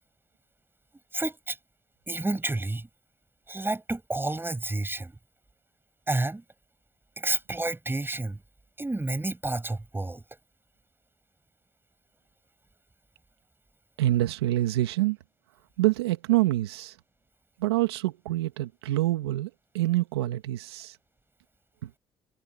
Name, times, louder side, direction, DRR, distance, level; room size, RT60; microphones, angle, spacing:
voice 1, 1.1-1.6 2.1-2.9 3.5-5.1 6.1-6.4 7.2-8.4 8.8-10.2, right 2 dB, 15° right, 7.9 m, -30 dB
voice 2, 14.0-15.2 15.8-16.9 17.6-21.0, right 16 dB, 90° right, 1.9 m, -26 dB
hypercardioid pair, 55°, 13 cm